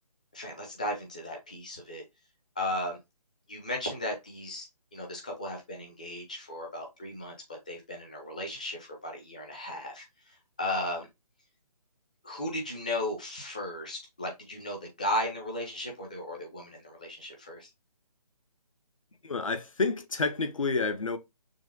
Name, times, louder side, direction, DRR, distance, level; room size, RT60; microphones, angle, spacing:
voice 1, 0.3-2.0 2.6-3.0 3.5-4.7 4.9-7.3 7.7-10.0 10.6-11.1 12.2-17.7, left 1 dB, 10° left, 0.4 m, -35 dB
voice 2, 19.2-21.2, left 4 dB, 55° left, 0.6 m, -29 dB
6.1 x 2.1 x 2.5 m
figure-of-eight pair, 150°, 20 cm